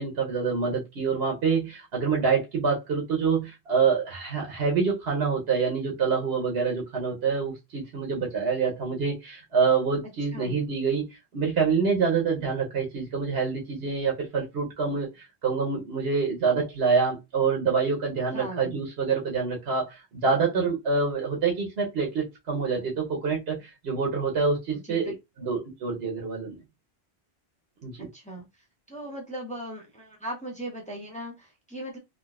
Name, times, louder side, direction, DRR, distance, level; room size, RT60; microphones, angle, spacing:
voice 1, 0.0-11.0 11.3-15.1 15.4-25.1 25.4-26.6 27.8-28.1, right 5 dB, 75° right, 1.1 m, -26 dB
voice 2, 18.3-18.7 24.9-25.1 28.1-28.5 28.9-32.0, right 1 dB, 10° left, 0.8 m, -38 dB
3.7 x 2.2 x 2.3 m
omnidirectional pair, 1.1 m